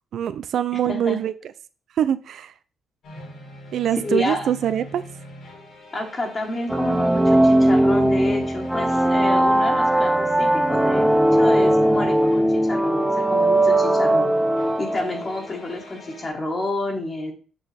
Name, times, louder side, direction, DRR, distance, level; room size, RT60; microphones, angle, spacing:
voice 1, 0.1-1.3 2.0-2.5 3.7-5.0, right 10 dB, 70° right, 13 dB, 0.4 m, -23 dB
sound 1, 3.0-16.3, equal, 65° left, 2.5 m, -41 dB
voice 2, 4.0-4.5 5.9-14.3 14.8-17.3, left 2 dB, 35° left, 1 dB, 1.6 m, -29 dB
sound 2, 6.7-15.3, right 1 dB, 5° right, 0.5 m, -19 dB
6.6 x 6.0 x 3.4 m, 0.37 s
cardioid pair, 90°, 0 cm